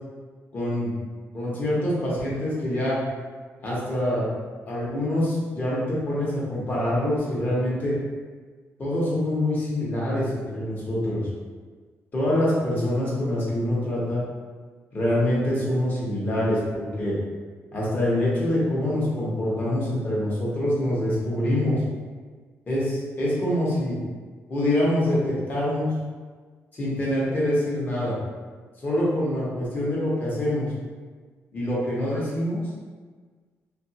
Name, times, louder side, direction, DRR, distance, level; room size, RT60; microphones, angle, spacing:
voice 1, 0.5-0.9 1.3-3.0 3.6-4.3 4.6-8.0 8.8-11.3 12.1-14.2 14.9-17.2 17.7-21.8 22.7-24.0 24.5-25.9 26.7-28.2 28.8-30.6 31.5-32.6, left 1 dB, 35° left, -7 dB, 1.0 m, -25 dB
2.8 x 2.5 x 2.8 m, 1.5 s
cardioid pair, 140°, 5 cm